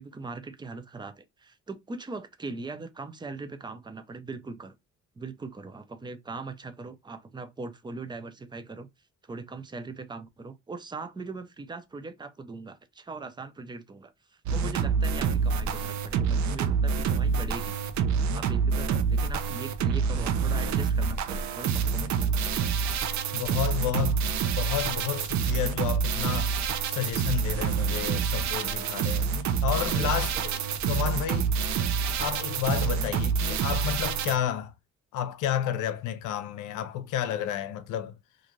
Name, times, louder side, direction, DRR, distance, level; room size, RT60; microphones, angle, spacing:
voice 1, 0.0-4.7 5.2-8.9 9.2-14.1 14.5-17.8 18.3-22.8 29.9-30.4, right 3 dB, 15° right, 0.4 m, -40 dB
sound 1, 14.5-34.4, right 6 dB, 65° right, 0.5 m, -27 dB
voice 2, 23.3-26.5 26.9-29.3 29.6-30.5 30.8-31.5 32.2-34.7 35.1-38.1, left 10 dB, 85° left, 0.6 m, -31 dB
2.5 x 2.5 x 3.0 m
cardioid pair, 90°, 30 cm